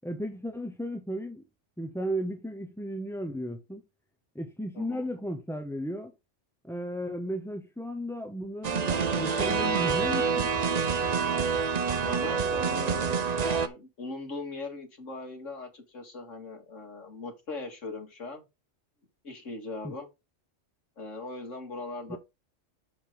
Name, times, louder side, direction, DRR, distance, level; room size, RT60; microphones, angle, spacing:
voice 1, 0.0-1.4 1.8-3.8 4.3-6.1 6.6-10.5 19.8-19.9 22.1-22.2, equal, 5° left, 0.6 m, -35 dB
voice 2, 4.7-5.1 12.0-18.4 19.2-20.1 21.0-22.2, left 2 dB, 75° left, 2.6 m, -40 dB
sound 1, 8.6-13.7, right 5 dB, 45° right, 0.6 m, -27 dB
7.3 x 6.0 x 3.8 m
omnidirectional pair, 1.3 m